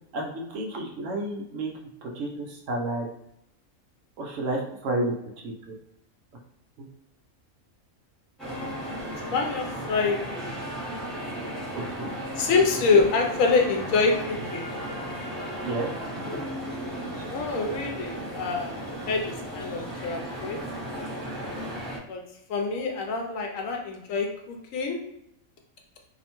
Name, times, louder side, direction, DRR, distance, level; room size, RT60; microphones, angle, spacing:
voice 1, 0.1-1.7 2.1-3.1 4.2-5.1 5.4-5.5 12.0-12.1 12.9-13.0 15.6-15.9, right 2 dB, 70° right, 0 dB, 0.9 m, -30 dB
voice 2, 8.4-10.6 12.4-14.6 17.3-20.6 22.1-22.2 22.5-25.0, left 4 dB, 75° left, 2 dB, 0.9 m, -26 dB
sound 1, 8.4-22.0, right 1 dB, ahead, 0.7 m, -35 dB
2.8 x 2.1 x 2.9 m, 0.80 s
omnidirectional pair, 1.4 m